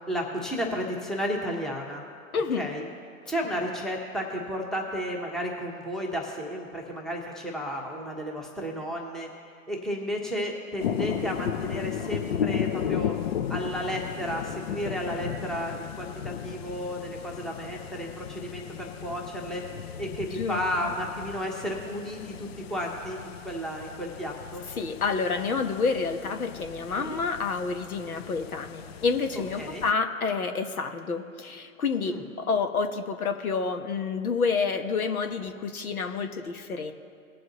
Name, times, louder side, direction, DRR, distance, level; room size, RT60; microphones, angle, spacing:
voice 1, 0.1-2.0 2.5-2.8 3.3-9.3 9.7-13.2 13.5-19.6 20.0-24.6 26.9-27.2 29.6-29.8 32.0-32.2, equal, ahead, -1 dB, 1.0 m, -33 dB
voice 2, 2.3-2.7 20.3-20.6 24.8-36.9, left 5 dB, 80° left, 7 dB, 1.3 m, -29 dB
sound 1, 10.8-29.9, left 8 dB, 45° left, 0.5 m, -35 dB
20.5 x 7.7 x 3.0 m, 2.2 s
hypercardioid pair, 135°, 43 cm